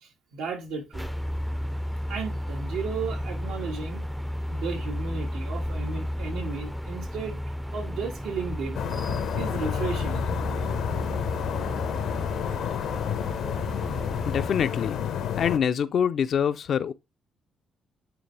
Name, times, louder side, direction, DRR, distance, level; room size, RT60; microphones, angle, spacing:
voice 1, 0.0-1.1 2.1-4.1 4.5-7.4 7.7-8.8 9.4-10.3, right 5 dB, 90° right, 2.1 m, -34 dB
sound 1, 0.9-14.5, equal, 5° right, 0.6 m, -33 dB
sound 2, 8.7-15.6, left 9 dB, 85° left, 1.1 m, -30 dB
voice 2, 14.2-15.0 15.4-16.9, left 8 dB, 60° left, 0.6 m, -25 dB
9.1 x 3.5 x 3.4 m
cardioid pair, 90°, 0 cm